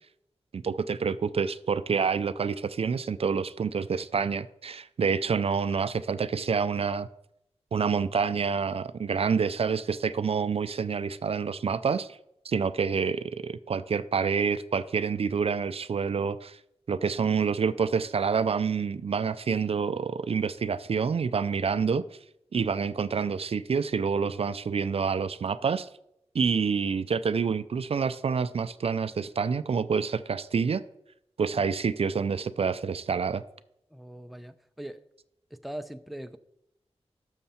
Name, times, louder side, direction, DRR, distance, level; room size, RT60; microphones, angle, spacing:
voice 1, 0.5-7.1 7.7-12.2 12.4-16.6 16.9-22.0 22.5-25.9 26.3-30.8 31.4-33.4, right 6 dB, 60° right, 0.4 m, -27 dB
voice 2, 33.9-35.0 35.5-36.4, right 1 dB, ahead, 0.5 m, -41 dB
12.5 x 6.5 x 4.3 m
wide cardioid pair, 95°, 11 cm